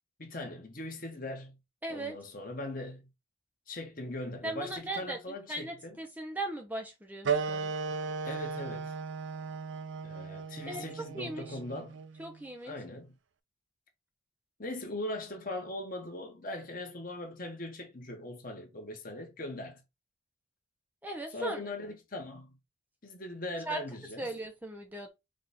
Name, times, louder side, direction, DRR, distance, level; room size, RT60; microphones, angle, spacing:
voice 1, 0.2-1.6 1.9-3.1 3.7-6.0 8.2-8.9 10.0-12.0 12.6-13.1 14.6-19.8 21.3-22.6 23.0-24.3, left 1 dB, 40° left, 1.2 m, -40 dB
voice 2, 1.8-2.2 4.4-5.2 5.5-7.7 10.7-11.6 12.2-12.7 21.0-21.6 23.7-23.8 24.2-25.1, right 2 dB, 10° right, 0.6 m, -38 dB
sound 1, 7.2-12.4, right 5 dB, 60° right, 0.5 m, -36 dB
4.9 x 2.4 x 4.0 m
head